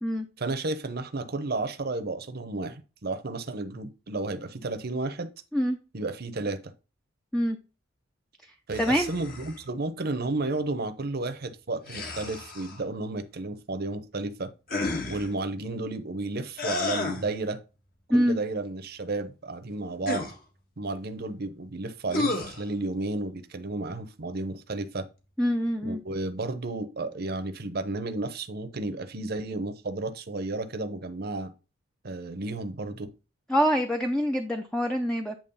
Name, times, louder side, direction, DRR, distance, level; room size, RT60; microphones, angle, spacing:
voice 1, 0.4-5.3 5.9-6.7 8.7-14.5 15.1-17.6 18.1-20.2 20.8-25.1 25.8-31.5 32.0-33.1, right 2 dB, 55° right, 0.9 m, -32 dB
sound 1, 8.7-9.6 11.8-12.8 14.7-15.3 16.6-17.3 20.0-20.4 22.1-22.6, left 3 dB, 50° left, 1.6 m, -31 dB
voice 2, 8.8-9.1 18.1-18.4 25.4-26.0 33.5-35.4, equal, 5° left, 0.6 m, -25 dB
8.7 x 3.0 x 5.5 m
head